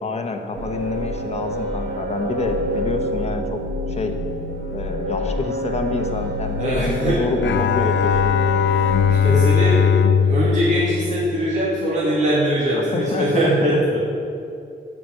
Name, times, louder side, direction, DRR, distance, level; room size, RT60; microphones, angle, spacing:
voice 1, 0.0-3.6 3.9-4.2 4.7-8.6 12.7-13.8, left 3 dB, 35° left, 5 dB, 1.2 m, -27 dB
sound 1, 0.6-9.2, equal, 70° right, 2.4 m, -27 dB
voice 2, 6.6-7.2 8.6-8.7 9.1-9.8 10.2-14.0, equal, 40° right, -7 dB, 2.6 m, -21 dB
Bowed string instrument, 7.4-11.9, left 7 dB, 75° left, 0.6 m, -19 dB
16.5 x 6.0 x 7.8 m, 2.6 s
wide cardioid pair, 180°, 19 cm